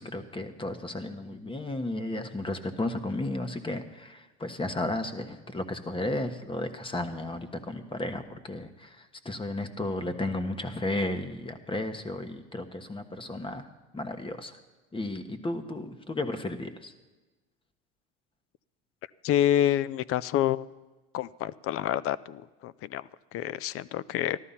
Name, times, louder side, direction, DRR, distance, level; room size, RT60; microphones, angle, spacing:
voice 1, 0.0-13.7 13.9-14.6 14.9-16.9, left 2 dB, 15° left, 9 dB, 1.3 m, -34 dB
voice 2, 19.2-20.7 21.1-24.4, left 11 dB, 50° left, 20 dB, 0.5 m, -28 dB
14.0 x 12.0 x 5.7 m, 1.2 s
supercardioid pair, 90°, 30 cm